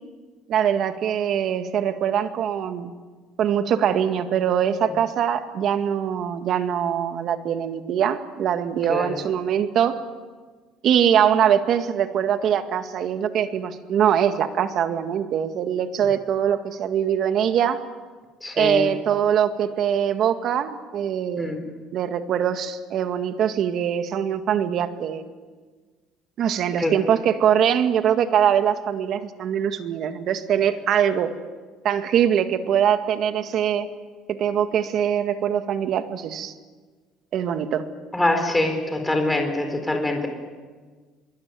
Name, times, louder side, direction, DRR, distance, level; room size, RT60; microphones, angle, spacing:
voice 1, 0.5-2.9 3.4-10.0 10.8-17.8 18.5-21.6 21.9-25.2 26.4-31.3 31.8-33.9 34.3-36.5 37.3-37.8, right 9 dB, 50° right, 8 dB, 2.0 m, -22 dB
voice 2, 18.4-18.9 21.4-21.6 26.8-26.9 38.1-40.3, left 2 dB, 10° left, 4 dB, 4.5 m, -24 dB
24.5 x 23.5 x 9.3 m, 1.4 s
cardioid pair, 145°, 0 cm